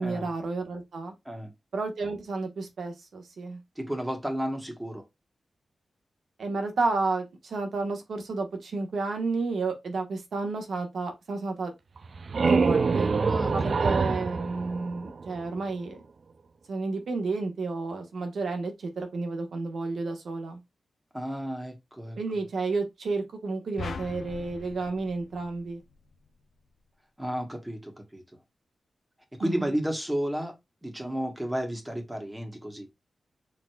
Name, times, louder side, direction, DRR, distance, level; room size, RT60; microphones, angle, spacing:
voice 1, 0.0-1.1 1.7-3.6 6.4-11.7 12.5-13.1 13.5-16.0 16.7-20.6 22.2-25.8 29.4-29.7, right 3 dB, 80° right, 1.1 m, -31 dB
voice 2, 3.8-5.0 13.1-14.3 21.1-22.2 27.2-28.2 29.3-32.9, equal, 10° right, 1.1 m, -33 dB
sound 1, 12.0-15.6, right 4 dB, 55° right, 0.4 m, -26 dB
sound 2, 23.8-26.2, left 5 dB, 85° left, 0.5 m, -40 dB
4.6 x 3.8 x 2.2 m
wide cardioid pair, 110°, 0 cm